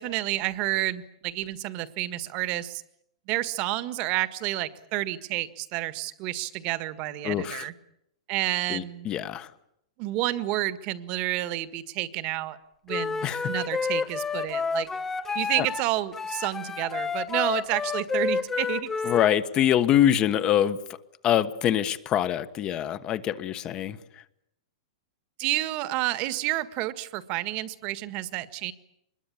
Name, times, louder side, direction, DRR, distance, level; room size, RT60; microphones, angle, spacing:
voice 1, 0.0-2.8 3.3-7.7 8.3-9.1 10.0-12.6 12.8-14.9 15.3-18.9 25.4-28.7, right 16 dB, 35° right, 13 dB, 1.7 m, -30 dB
voice 2, 7.2-7.6 8.7-9.5 13.2-13.4 19.1-20.8 21.2-24.0, left 11 dB, 25° left, 12 dB, 1.3 m, -24 dB
Wind instrument woodwind instrument, 12.9-15.8 16.1-19.3, left 5 dB, 10° left, 1.0 m, -30 dB
24.5 x 21.5 x 8.7 m, 0.78 s
hypercardioid pair, 150°, 3 cm